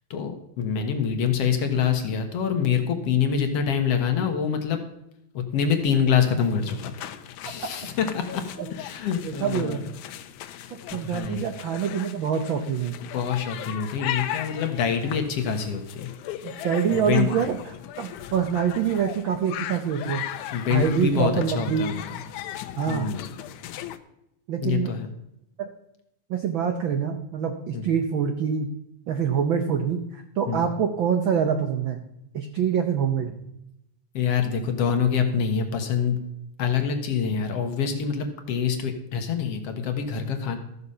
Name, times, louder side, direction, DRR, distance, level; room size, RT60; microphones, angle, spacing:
voice 1, 0.1-4.8 5.3-6.9 7.4-8.4 8.7-9.8 10.5-11.5 13.1-16.1 16.5-16.6 16.9-17.3 20.5-22.2 22.9-23.2 24.6-25.1 27.7-27.9 30.5-30.6 34.1-36.2 36.6-40.6, left 7 dB, 60° left, 5 dB, 2.0 m, -25 dB
sound 1, 6.4-24.0, left 12 dB, 90° left, 2.1 m, -37 dB
voice 2, 9.2-9.9 10.9-13.0 16.4-20.2 20.7-21.8 22.8-23.1 24.5-24.9 25.6-25.7 26.3-28.7 29.1-32.0 32.3-33.4, right 7 dB, 80° right, 6 dB, 1.1 m, -25 dB
13.5 x 6.9 x 5.6 m, 0.83 s
omnidirectional pair, 3.3 m